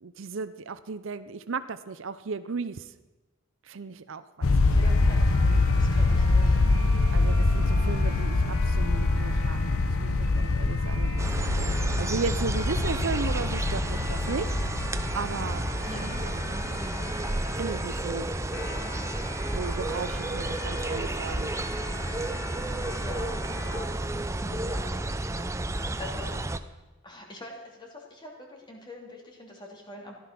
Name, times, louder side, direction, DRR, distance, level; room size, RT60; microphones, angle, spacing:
voice 1, 0.0-2.9 3.6-4.7 5.1-5.2 7.1-14.5 15.1-15.6 16.2-16.8 17.6-18.3 19.6-21.5, right 4 dB, 60° right, 12 dB, 0.6 m, -35 dB
sound 1, 4.4-17.7, left 2 dB, 85° left, 0.8 m, -25 dB
voice 2, 4.7-6.6 15.9-16.2 23.0-23.3 23.6-25.4 25.7-26.3 27.0-30.2, left 1 dB, 20° left, -1 dB, 2.8 m, -44 dB
sound 2, 4.8-23.8, left 2 dB, 60° left, 3.0 m, -42 dB
sound 3, 11.2-26.6, right 2 dB, 15° right, 0.5 m, -32 dB
15.0 x 12.0 x 6.0 m, 1.1 s
head